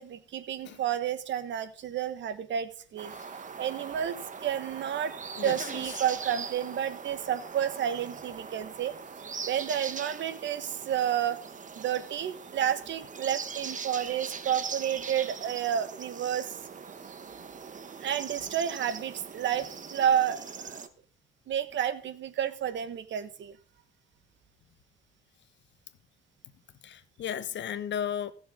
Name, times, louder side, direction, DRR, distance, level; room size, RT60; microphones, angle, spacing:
voice 1, 0.0-3.1 3.6-5.1 5.4-8.9 9.5-11.4 11.8-16.6 18.0-20.9 21.5-23.6, right 9 dB, 70° right, 1.4 m, -30 dB
sound 1, 3.0-20.9, right 6 dB, 40° right, 1.2 m, -41 dB
voice 2, 5.4-5.8 26.8-28.3, left 9 dB, 65° left, 1.1 m, -35 dB
17.5 x 6.9 x 3.7 m
cardioid pair, 90°, 20 cm